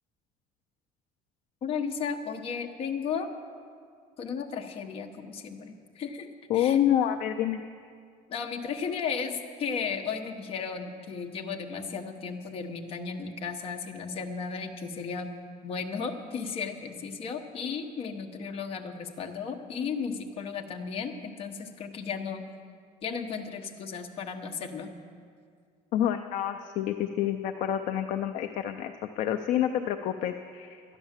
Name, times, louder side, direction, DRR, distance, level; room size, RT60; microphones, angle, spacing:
voice 1, 1.6-3.3 4.2-6.8 8.3-15.3 15.6-22.4 23.0-24.9, left 6 dB, 40° left, 4 dB, 1.0 m, -35 dB
voice 2, 6.5-7.6 25.9-30.8, left 10 dB, 55° left, 6 dB, 0.5 m, -28 dB
11.5 x 10.5 x 7.3 m, 2.2 s
cardioid pair, 175°, 15 cm